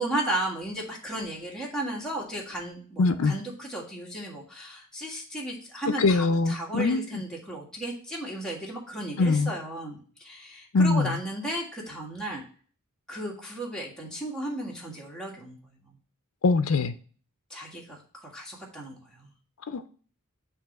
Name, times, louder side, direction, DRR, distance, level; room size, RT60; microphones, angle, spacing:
voice 1, 0.0-12.4 13.1-15.6 17.5-19.3, right 1 dB, 5° left, 1.7 m, -34 dB
voice 2, 3.0-3.3 6.0-7.2 9.2-9.5 10.7-11.2 16.4-16.9 19.7-19.9, left 3 dB, 65° left, 0.5 m, -23 dB
7.1 x 2.8 x 5.8 m
head